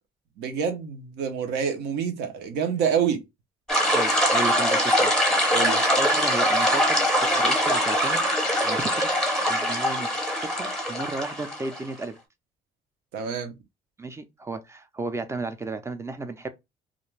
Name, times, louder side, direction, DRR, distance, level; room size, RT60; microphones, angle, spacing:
voice 1, 0.4-3.2 5.5-5.8 13.1-13.5, right 7 dB, 80° right, 0.7 m, -27 dB
sound 1, 3.7-12.0, equal, 5° left, 0.8 m, -23 dB
voice 2, 3.9-5.1 6.0-9.1 9.5-12.2 14.0-16.5, right 3 dB, 15° right, 0.4 m, -34 dB
2.4 x 2.2 x 3.1 m
cardioid pair, 110°, 17 cm